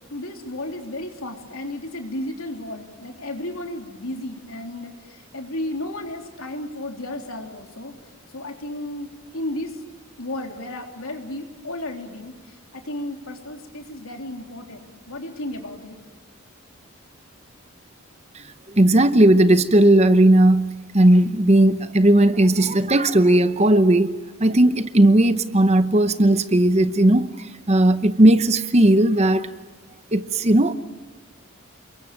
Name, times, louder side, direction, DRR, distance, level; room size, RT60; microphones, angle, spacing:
voice 1, 0.1-8.0 8.3-9.8 10.2-16.0, left 1 dB, 80° left, 3 dB, 3.6 m, -33 dB
voice 2, 18.7-27.3 27.7-29.5 30.1-30.7, right 1 dB, 30° right, 12 dB, 0.8 m, -16 dB
28.5 x 22.5 x 9.0 m, 1.3 s
head